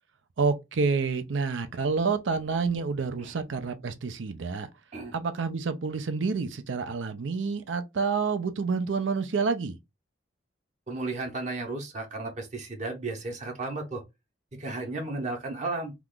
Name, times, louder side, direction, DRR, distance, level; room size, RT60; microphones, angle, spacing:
voice 1, 0.4-4.7 5.1-9.8, right 4 dB, 85° right, 0.5 m, -28 dB
voice 2, 10.9-14.0 14.5-15.9, right 2 dB, 40° right, 0.8 m, -34 dB
2.9 x 2.4 x 3.6 m
head